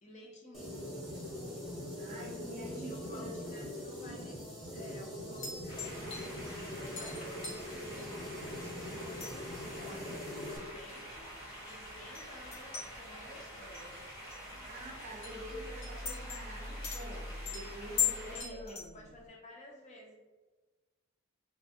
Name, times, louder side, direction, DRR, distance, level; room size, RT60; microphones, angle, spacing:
voice 1, 0.0-1.0 2.6-4.5 4.7-9.5 9.8-14.1 14.7-14.8 18.2-18.6 18.9-20.2, left 1 dB, 35° left, -1 dB, 0.4 m, -53 dB
sound 1, 0.5-10.6, left 1 dB, ahead, 0.7 m, -42 dB
voice 2, 2.0-3.7 14.5-19.1, right 1 dB, 30° right, -2 dB, 0.4 m, -47 dB
sound 2, 5.4-8.8 9.1-19.1, left 7 dB, 55° left, 0.8 m, -40 dB
sound 3, 5.7-18.4, equal, 75° left, 1.1 m, -48 dB
2.4 x 2.1 x 2.6 m, 1.2 s
head